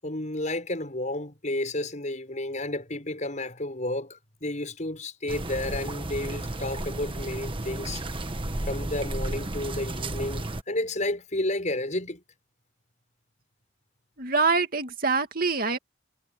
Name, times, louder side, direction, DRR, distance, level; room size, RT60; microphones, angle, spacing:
voice 1, 0.0-8.0 8.7-12.2, left 1 dB, 40° left, 7.2 m, -31 dB
sound 1, 5.3-10.6, right 1 dB, 30° right, 1.4 m, -33 dB
voice 2, 14.2-15.8, right 4 dB, 50° right, 2.3 m, -25 dB
head